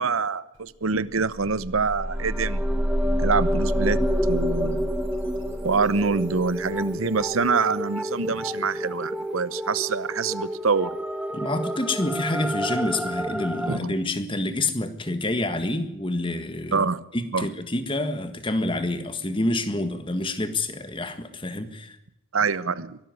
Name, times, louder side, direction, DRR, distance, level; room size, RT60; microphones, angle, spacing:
voice 1, 0.0-2.6 3.2-4.0 4.3-4.9 5.6-10.9 13.7-13.8 16.7-17.0 17.3-17.5 22.3-23.0, right 4 dB, 85° right, 17 dB, 0.9 m, -25 dB
sound 1, 0.5-0.6 1.0-7.7, equal, 65° right, 4.2 m, -29 dB
sound 2, 1.9-13.8, equal, 5° right, 1.1 m, -30 dB
voice 2, 11.3-16.9 17.1-22.0, left 2 dB, 25° left, 10 dB, 1.7 m, -27 dB
22.5 x 13.0 x 9.6 m, 0.84 s
head